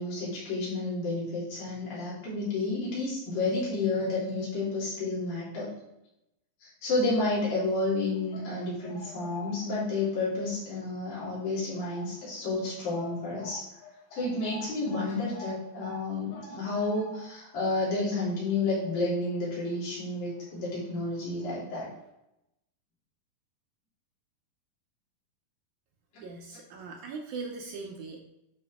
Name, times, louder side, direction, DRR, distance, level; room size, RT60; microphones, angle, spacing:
voice 1, 0.0-5.7 6.6-13.6 14.1-21.9, left 2 dB, 80° left, -8 dB, 5.0 m, -31 dB
sound 1, 8.0-10.0 10.4-10.7 11.2-12.3 12.5-12.6 13.0-20.0 20.3-20.5 21.3-21.4 21.8-21.9, equal, 50° left, 2.3 m, -48 dB
voice 2, 26.2-28.2, right 4 dB, 75° right, 1 dB, 1.9 m, -40 dB
11.0 x 4.4 x 3.6 m, 0.86 s
omnidirectional pair, 4.0 m